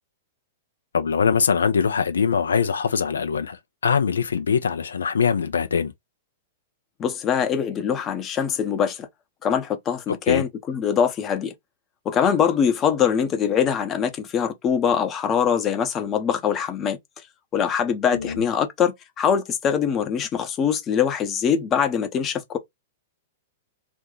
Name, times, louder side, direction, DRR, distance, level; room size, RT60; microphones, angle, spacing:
voice 1, 0.9-3.6 3.8-5.9 10.3-10.4 18.1-18.4, left 6 dB, 75° left, 0.4 m, -22 dB
voice 2, 7.0-9.1 9.4-11.5 12.0-17.0 17.5-22.6, left 7 dB, 25° left, 0.8 m, -23 dB
2.7 x 2.3 x 3.7 m
figure-of-eight pair, 105°, 0 cm